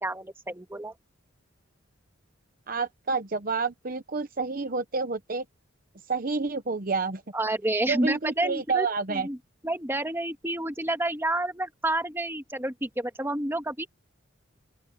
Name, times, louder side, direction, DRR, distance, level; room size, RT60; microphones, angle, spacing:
voice 1, 0.0-0.9 7.3-9.4 9.6-13.9, right 1 dB, 10° right, 1.8 m, -29 dB
voice 2, 2.7-5.4 6.1-7.2 7.9-9.3, right 4 dB, 45° right, 0.9 m, -29 dB
open air
head